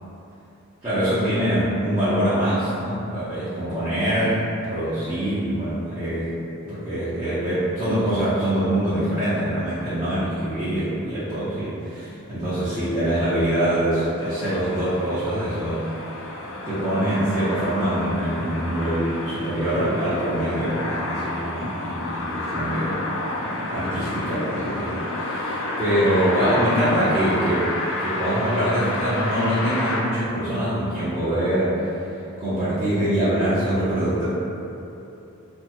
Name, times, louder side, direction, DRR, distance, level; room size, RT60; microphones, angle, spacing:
voice 1, 0.8-6.3 6.7-15.8 16.4-22.9 23.3-31.9 32.4-34.3, right 1 dB, 20° right, -15 dB, 0.6 m, -24 dB
sound 1, 14.2-30.0, left 2 dB, 60° left, 0.4 m, -30 dB
2.7 x 2.2 x 2.8 m, 2.8 s
head